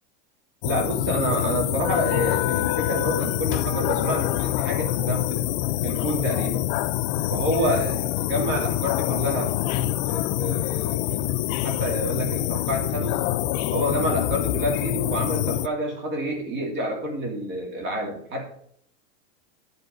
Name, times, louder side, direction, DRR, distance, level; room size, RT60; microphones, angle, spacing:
sound 1, 0.6-15.7, left 14 dB, 50° left, 0.4 m, -25 dB
voice 1, 0.6-5.5 5.8-6.7 7.3-13.2 13.7-18.4, equal, 30° right, 1 dB, 2.7 m, -28 dB
10.5 x 5.4 x 5.3 m, 0.65 s
supercardioid pair, 150°, 36 cm